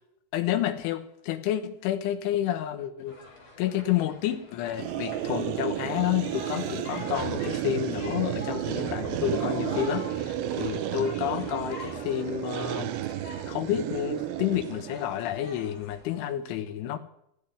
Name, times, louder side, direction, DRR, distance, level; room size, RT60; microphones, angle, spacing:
voice 1, 0.3-3.2 3.6-13.0 13.5-17.0, left 11 dB, 90° left, 9 dB, 3.6 m, -30 dB
sound 1, 3.1-16.2, left 3 dB, 30° left, 4.0 m, -45 dB
sound 2, 4.8-15.2, right 12 dB, 80° right, 2.2 m, -32 dB
14.5 x 8.6 x 9.9 m, 0.75 s
omnidirectional pair, 5.4 m